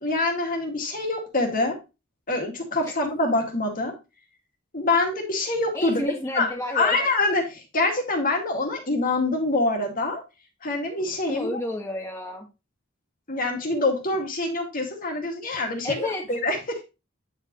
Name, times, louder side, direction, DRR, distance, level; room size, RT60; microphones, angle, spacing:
voice 1, 0.0-1.8 2.3-3.9 4.7-6.0 6.4-10.2 10.6-11.5 13.3-16.8, left 2 dB, 45° left, 2 dB, 2.2 m, -25 dB
voice 2, 5.7-7.0 11.3-12.5 15.8-16.2, left 1 dB, 15° left, -1 dB, 1.3 m, -31 dB
9.6 x 5.0 x 3.1 m, 0.27 s
head